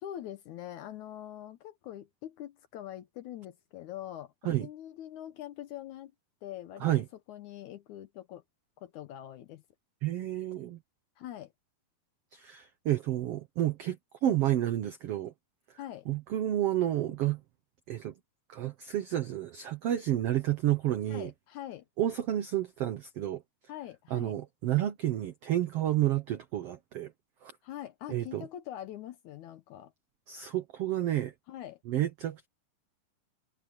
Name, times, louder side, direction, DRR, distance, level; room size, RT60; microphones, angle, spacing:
voice 1, 0.0-4.3 4.6-6.1 6.4-6.9 7.3-8.4 8.8-9.6 11.2-11.5 15.8-16.1 21.1-21.9 23.7-24.4 27.6-29.9 31.5-31.8, left 12 dB, 75° left, 1.9 m, -43 dB
voice 2, 10.0-10.8 12.3-14.0 14.2-15.3 16.1-17.4 17.9-18.1 18.5-21.3 22.0-23.4 24.1-27.1 27.4-27.5 28.1-28.4 30.3-31.3 31.9-32.5, right 13 dB, 85° right, 1.3 m, -30 dB
omnidirectional pair, 4.1 m